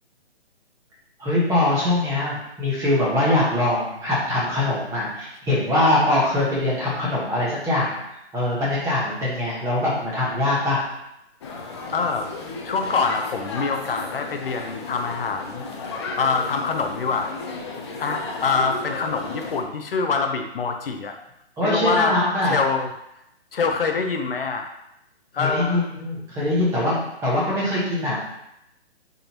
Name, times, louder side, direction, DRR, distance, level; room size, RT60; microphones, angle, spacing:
voice 1, 1.2-8.0 8.3-10.8 21.6-22.6 25.4-28.2, left 1 dB, 10° right, -6 dB, 1.4 m, -22 dB
sound 1, 11.4-19.6, left 3 dB, 25° left, 0.7 m, -34 dB
voice 2, 11.9-12.3 12.6-15.6 16.2-17.3 18.0-21.1 21.6-22.9 23.5-24.7 25.3-25.9, left 4 dB, 55° left, 5 dB, 0.8 m, -25 dB
8.9 x 3.9 x 3.0 m, 0.82 s
hypercardioid pair, 150°, 34 cm